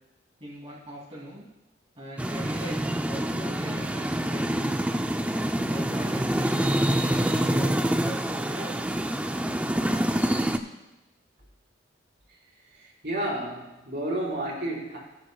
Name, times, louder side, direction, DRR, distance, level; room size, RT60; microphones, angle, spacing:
voice 1, 0.4-1.5 1.9-4.8 5.7-6.7 7.0-9.0, right 1 dB, 35° right, -8 dB, 2.8 m, -41 dB
sound 1, 2.2-10.6, right 1 dB, 5° right, 0.5 m, -26 dB
voice 2, 13.0-15.0, right 1 dB, 60° right, -4 dB, 4.2 m, -30 dB
18.0 x 9.1 x 2.3 m, 1.0 s
head